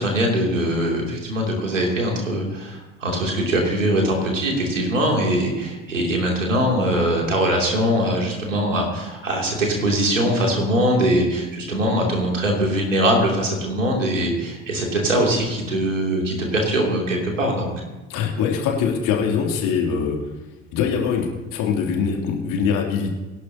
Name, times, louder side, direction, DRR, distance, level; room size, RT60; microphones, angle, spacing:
voice 1, 0.0-17.7, right 1 dB, 85° right, 0 dB, 3.0 m, -22 dB
voice 2, 18.1-20.2 20.7-23.1, left 6 dB, 55° left, 0 dB, 3.1 m, -23 dB
23.5 x 11.5 x 2.9 m, 1.1 s
figure-of-eight pair, 60°, 37 cm